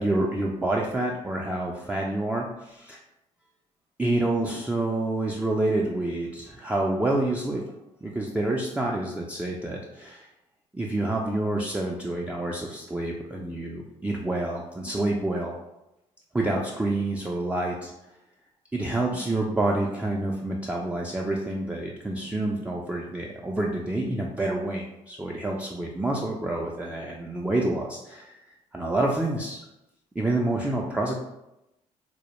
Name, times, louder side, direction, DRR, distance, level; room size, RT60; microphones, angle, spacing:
voice 1, 0.0-3.0 4.0-7.6 8.0-10.3 10.7-15.5 16.3-17.9 18.7-28.4 28.7-29.7 30.2-31.1, right 2 dB, 10° right, -2 dB, 0.3 m, -28 dB
2.1 x 2.0 x 2.9 m, 0.89 s
supercardioid pair, 60°, 14 cm